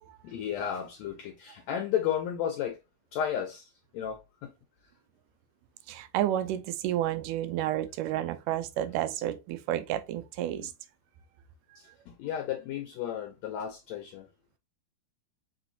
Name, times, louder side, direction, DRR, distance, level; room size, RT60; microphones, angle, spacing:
voice 1, 0.2-2.8 3.1-4.5 10.5-10.7 11.7-14.3, left 9 dB, 75° left, 1.6 m, -33 dB
voice 2, 5.9-10.7, right 12 dB, 85° right, 2.2 m, -31 dB
5.8 x 3.0 x 2.6 m
omnidirectional pair, 3.7 m